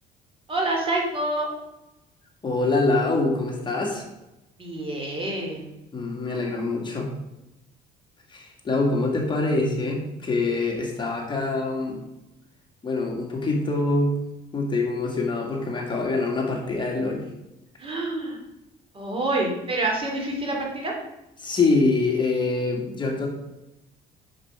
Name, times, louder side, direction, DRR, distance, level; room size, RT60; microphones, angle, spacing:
voice 1, 0.5-1.5 4.6-5.8 17.8-18.4 18.9-20.9, right 2 dB, 35° right, 0 dB, 2.8 m, -27 dB
voice 2, 2.4-4.0 5.9-7.1 8.3-12.0 12.8-14.2 14.5-17.2 21.4-23.3, left 3 dB, 30° left, -1 dB, 2.2 m, -25 dB
7.8 x 7.1 x 5.0 m, 0.92 s
cardioid pair, 110°, 17 cm